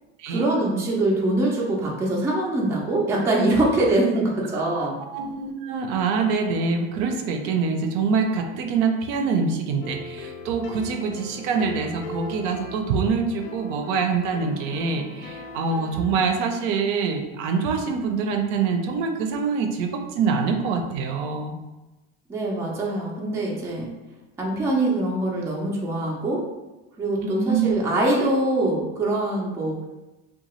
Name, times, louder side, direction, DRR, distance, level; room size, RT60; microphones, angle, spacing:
voice 1, 0.3-5.0 22.3-23.9 24.4-26.4 27.0-29.8, right 2 dB, 10° right, -4 dB, 0.3 m, -23 dB
voice 2, 4.7-21.6 27.2-27.7, right 5 dB, 65° right, 4 dB, 0.5 m, -25 dB
sound 1, 9.8-16.3, left 2 dB, 70° left, 0.5 m, -39 dB
2.8 x 2.3 x 3.0 m, 1.1 s
supercardioid pair, 135°, 32 cm